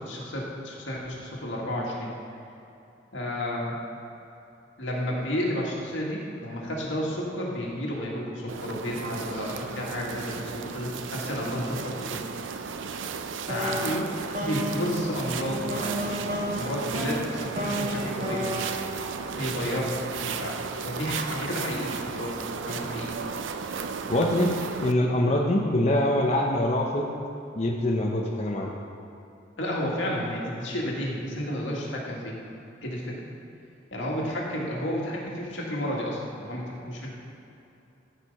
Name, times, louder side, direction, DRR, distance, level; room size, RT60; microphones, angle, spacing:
voice 1, 0.0-2.1 3.1-3.8 4.8-12.2 13.5-16.1 16.5-18.5 19.4-20.6 20.8-22.4 22.6-23.2 29.6-32.4 32.8-33.3 33.9-37.1, equal, 80° left, -3 dB, 1.9 m, -31 dB
sound 1, 8.5-24.9, right 5 dB, 80° right, 0.5 m, -34 dB
sound 2, 13.5-19.9, equal, 45° right, 2.3 m, -33 dB
voice 2, 24.1-27.1 27.6-28.7, left 1 dB, 35° left, -1 dB, 0.7 m, -24 dB
13.5 x 4.7 x 5.4 m, 2.8 s
head